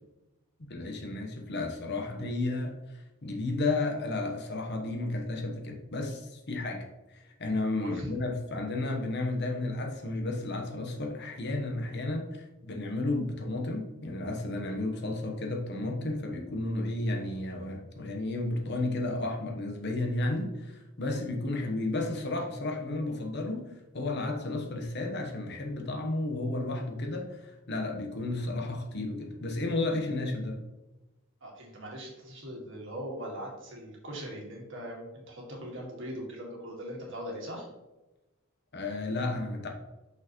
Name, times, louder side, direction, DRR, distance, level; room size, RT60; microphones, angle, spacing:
voice 1, 0.7-30.6 38.7-39.7, left 2 dB, 50° left, 3 dB, 1.0 m, -33 dB
voice 2, 31.4-37.7, equal, 60° right, -2 dB, 1.9 m, -40 dB
6.0 x 5.5 x 3.0 m, 1.0 s
head